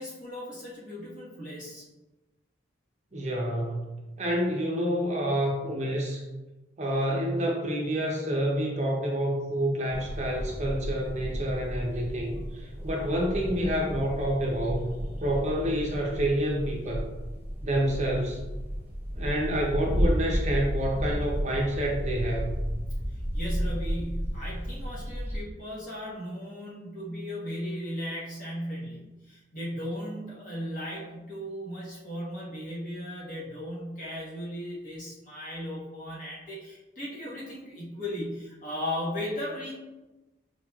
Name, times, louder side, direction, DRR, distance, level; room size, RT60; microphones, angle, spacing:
voice 1, 0.0-1.8 23.1-39.7, equal, 45° left, -6 dB, 1.2 m, -36 dB
voice 2, 3.1-6.2 6.8-17.1 17.6-18.4 19.1-22.6, equal, 35° right, -2 dB, 0.6 m, -28 dB
sound 1, 9.9-25.4, equal, 15° right, 1.3 m, -32 dB
4.4 x 3.0 x 2.3 m, 1.1 s
head